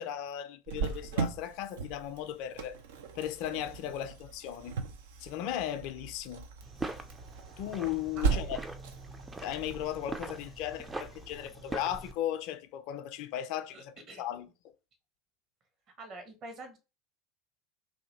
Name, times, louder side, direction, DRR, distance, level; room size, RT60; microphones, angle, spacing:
voice 1, 0.0-2.8 3.1-4.8 5.2-6.4 7.6-8.6 9.4-14.5, left 11 dB, 50° left, 0.5 m, -36 dB
Cricket, 0.7-12.1, right 6 dB, 65° right, 0.6 m, -38 dB
sound 1, 6.6-12.1, right 2 dB, 10° right, 0.5 m, -42 dB
voice 2, 8.2-8.5 13.7-14.2 16.0-16.8, right 2 dB, 40° right, 1.2 m, -46 dB
2.8 x 2.8 x 4.2 m
figure-of-eight pair, 75°, 0 cm